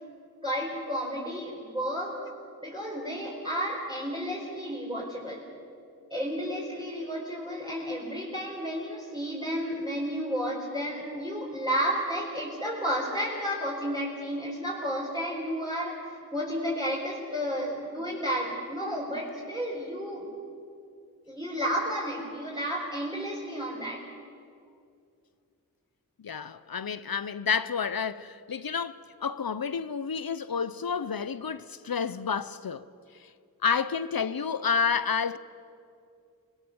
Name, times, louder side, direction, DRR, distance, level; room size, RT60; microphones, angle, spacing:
voice 1, 0.4-2.2 2.6-5.4 6.1-16.0 16.3-20.3 21.3-24.0, equal, 15° right, 4.7 m, -32 dB
voice 2, 26.2-32.9 33.6-35.4, left 6 dB, 75° left, 0.7 m, -30 dB
25.5 x 20.5 x 7.0 m
wide cardioid pair, 45°, 36 cm